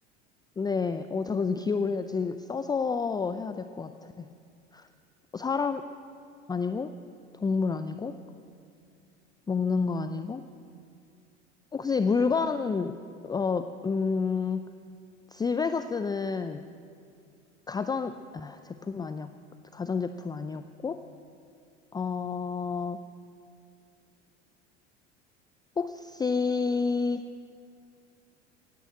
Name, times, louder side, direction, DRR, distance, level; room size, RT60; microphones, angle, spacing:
voice 1, 0.6-4.3 4.7-4.9 5.3-5.8 6.5-6.9 7.4-8.1 9.5-10.4 11.7-12.9 13.2-14.6 15.3-16.6 17.7-19.3 19.7-21.0 21.9-23.0 25.8-27.2, left 5 dB, 10° left, 10 dB, 0.5 m, -29 dB
16.5 x 10.5 x 7.7 m, 2.4 s
figure-of-eight pair, 70°, 35 cm